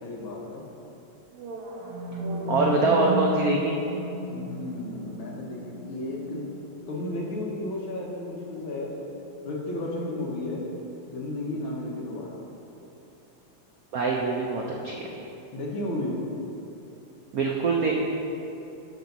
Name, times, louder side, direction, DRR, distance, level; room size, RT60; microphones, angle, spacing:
voice 1, 0.0-0.6 2.4-3.2 4.2-6.4 6.9-9.1 9.4-10.7 11.1-12.4 15.5-16.2, left 1 dB, 70° left, -3 dB, 2.1 m, -33 dB
sound 1, 1.3-9.4, equal, 90° right, 1.8 m, -36 dB
voice 2, 2.5-3.8 13.9-15.0 17.3-17.9, right 3 dB, 70° right, -1 dB, 0.8 m, -24 dB
12.0 x 5.6 x 4.0 m, 2.8 s
omnidirectional pair, 2.4 m